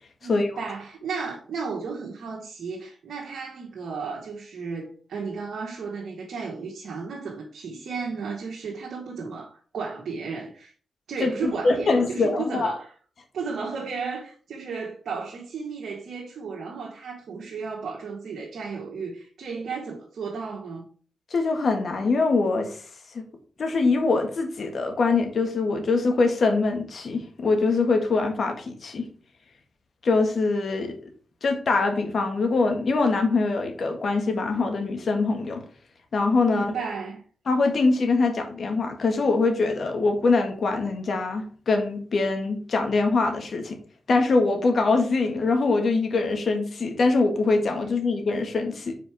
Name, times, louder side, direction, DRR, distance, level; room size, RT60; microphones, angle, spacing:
voice 1, 0.2-10.7 11.1-12.9 13.3-20.9 36.4-37.2, right 5 dB, 80° right, 1.5 m, -34 dB
voice 2, 11.2-12.7 21.3-22.8 23.1-23.2 23.6-29.0 30.0-30.9 31.4-35.6 36.1-36.7 37.5-43.8 44.1-48.9, left 3 dB, 65° left, 1.7 m, -23 dB
5.1 x 4.7 x 4.7 m
cardioid pair, 65°, 0 cm